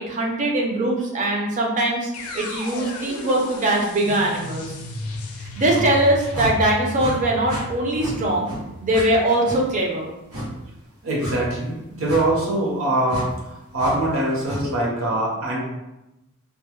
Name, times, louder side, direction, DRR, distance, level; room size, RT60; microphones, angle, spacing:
voice 1, 0.0-4.7 5.4-8.5 8.8-10.1, right 1 dB, 35° right, -1 dB, 0.4 m, -21 dB
sound 1, 2.1-10.1, left 2 dB, 75° left, 0.4 m, -34 dB
sound 2, 5.7-5.9 6.3-6.5 6.9-7.1 7.5-7.6 8.0-8.2 8.4-8.6 8.9-9.1 9.4-9.6 10.3-10.5 11.2-11.4 12.0-12.2 13.1-13.3 13.8-13.9 14.4-14.6, equal, 90° right, 0.9 m, -31 dB
voice 2, 11.0-13.3 13.7-15.6, right 1 dB, 65° right, -3 dB, 0.8 m, -23 dB
2.2 x 2.0 x 2.9 m, 0.94 s
head